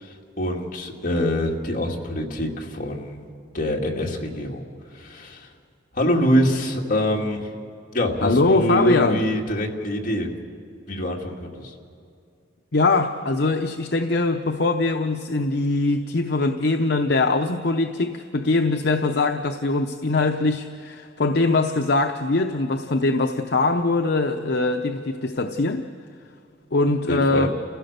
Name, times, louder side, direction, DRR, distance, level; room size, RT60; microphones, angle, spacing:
voice 1, 0.0-3.2 3.5-4.6 4.9-5.5 5.9-7.5 7.9-10.3 10.9-11.7 27.1-27.5, equal, 45° left, -1 dB, 2.3 m, -25 dB
voice 2, 8.2-9.2 12.7-25.8 26.7-27.5, left 3 dB, 65° left, 6 dB, 0.8 m, -22 dB
30.0 x 16.0 x 6.7 m, 2.4 s
head